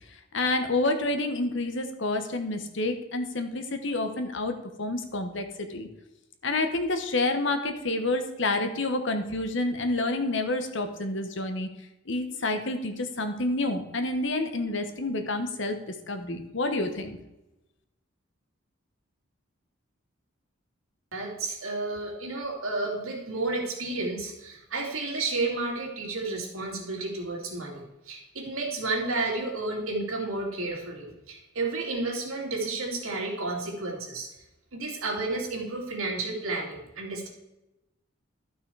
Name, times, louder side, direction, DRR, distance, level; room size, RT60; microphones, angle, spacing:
voice 1, 0.3-5.4 5.7-5.9 6.4-11.7 12.1-17.2, left 2 dB, 60° left, 7 dB, 1.1 m, -28 dB
voice 2, 21.1-34.3 34.7-37.3, right 3 dB, 80° right, -1 dB, 2.7 m, -31 dB
12.0 x 5.9 x 4.7 m, 0.95 s
head